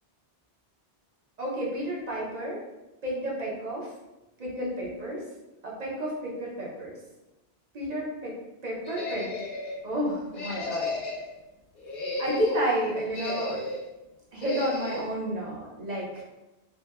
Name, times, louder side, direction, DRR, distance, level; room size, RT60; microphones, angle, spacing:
voice 1, 1.4-2.6 3.0-3.9 4.4-5.2 5.6-7.0 7.7-8.4 8.6-9.3 9.8-10.9 12.2-13.6 14.3-16.2, right 1 dB, 45° right, -5 dB, 0.6 m, -31 dB
sound 1, 8.8-9.8 10.3-11.3 11.8-12.6 13.1-13.9 14.4-15.1, left 2 dB, 55° left, 0.7 m, -34 dB
2.8 x 2.1 x 2.3 m, 1.0 s
omnidirectional pair, 1.1 m